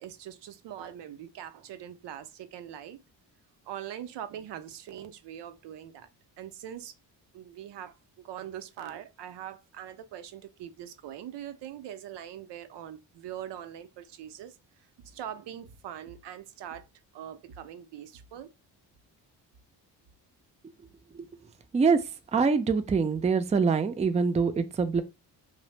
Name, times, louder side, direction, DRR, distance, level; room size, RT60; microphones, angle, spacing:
voice 1, 0.0-3.0 3.7-6.1 6.4-6.9 7.3-14.5 15.0-16.9 17.1-18.5, right 10 dB, 70° right, 0.6 m, -42 dB
voice 2, 21.7-22.0 22.3-25.0, right 5 dB, 15° right, 0.4 m, -24 dB
2.6 x 2.0 x 3.1 m
supercardioid pair, 55°, 43 cm